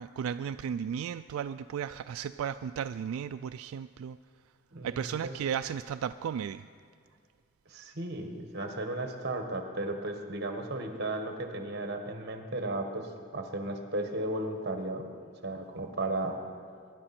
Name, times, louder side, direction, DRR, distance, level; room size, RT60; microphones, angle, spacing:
voice 1, 0.0-4.2 4.8-6.7, right 8 dB, 85° right, 11 dB, 0.3 m, -35 dB
voice 2, 4.7-5.3 7.7-15.1 15.4-16.4, right 2 dB, 50° right, 5 dB, 1.5 m, -35 dB
22.5 x 11.0 x 4.4 m, 2.3 s
head